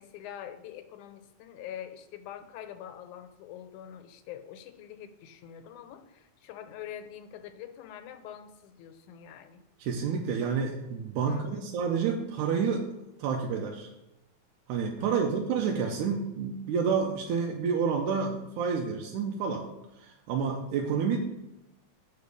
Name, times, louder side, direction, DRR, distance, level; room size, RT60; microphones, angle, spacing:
voice 1, 0.0-9.6 11.2-11.7 14.9-15.3, left 10 dB, 85° left, 9 dB, 2.1 m, -45 dB
voice 2, 9.8-12.9 13.2-13.9 14.7-19.7 20.0-21.2, right 6 dB, 90° right, 1 dB, 2.2 m, -29 dB
7.7 x 5.2 x 6.3 m, 0.97 s
omnidirectional pair, 3.5 m